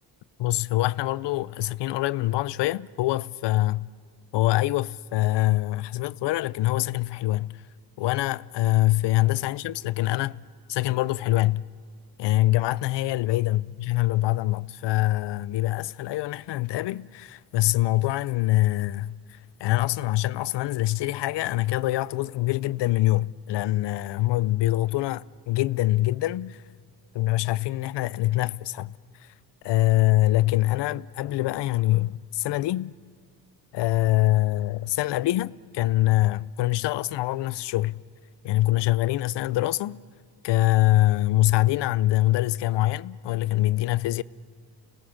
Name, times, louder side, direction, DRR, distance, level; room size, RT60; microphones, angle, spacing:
voice 1, 0.4-3.9 4.3-7.6 8.0-10.4 10.7-11.6 12.2-26.6 27.1-28.9 29.2-29.3 29.6-32.9 33.7-38.0 38.4-40.0 40.4-44.2, left 16 dB, 80° left, 0.6 m, -24 dB
26.0 x 19.5 x 7.2 m
cardioid pair, 95°, 42 cm